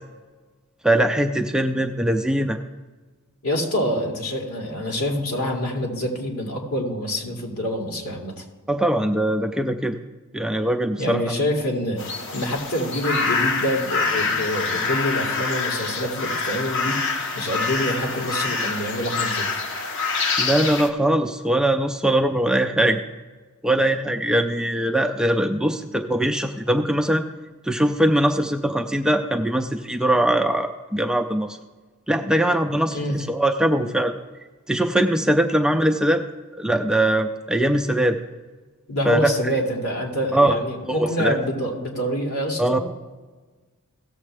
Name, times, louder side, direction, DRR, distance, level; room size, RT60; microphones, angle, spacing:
voice 1, 0.8-2.6 8.7-10.0 10.3-11.3 20.4-23.0 23.6-27.2 27.7-31.6 32.1-34.2 34.7-36.2 36.6-38.2 39.1-39.3 40.3-40.6 40.9-41.4 42.6-42.8, right 1 dB, 5° right, 5 dB, 0.4 m, -21 dB
voice 2, 3.4-8.4 11.0-12.0 12.3-17.0 17.3-19.6 32.9-33.2 38.9-42.8, equal, 80° left, -1 dB, 2.5 m, -26 dB
sound 1, 12.0-20.9, left 4 dB, 55° left, 1.0 m, -26 dB
17.0 x 7.3 x 3.4 m, 1.3 s
head